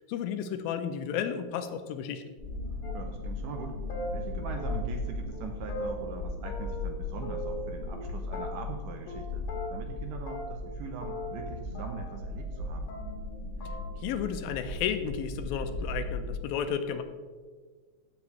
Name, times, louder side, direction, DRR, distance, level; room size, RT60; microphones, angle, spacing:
voice 1, 0.1-2.2 14.0-17.0, left 8 dB, 85° left, 8 dB, 2.4 m, -32 dB
sound 1, 2.4-16.4, left 2 dB, 25° left, 1.0 m, -37 dB
voice 2, 2.7-12.9, right 6 dB, 75° right, 4 dB, 2.0 m, -42 dB
sound 2, 2.8-3.2 3.5-3.6 3.9-4.1 4.6-5.1 5.3-5.4 5.7-6.9 7.2-8.0 8.3-8.8 9.1-9.2 9.5-10.0 10.3-12.6 12.9-13.3 13.6-13.8, left 1 dB, 60° left, 2.1 m, -40 dB
15.5 x 7.1 x 3.1 m, 1.5 s
omnidirectional pair, 4.2 m